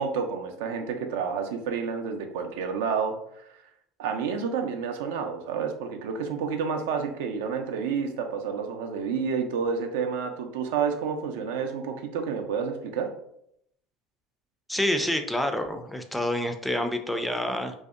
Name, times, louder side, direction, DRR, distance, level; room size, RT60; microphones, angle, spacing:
voice 1, 0.0-3.6 4.0-13.1, right 6 dB, 75° right, 5 dB, 0.3 m, -30 dB
voice 2, 14.7-17.7, left 1 dB, 5° left, 6 dB, 0.3 m, -28 dB
2.6 x 2.1 x 2.4 m, 0.74 s
hypercardioid pair, 85°, 0 cm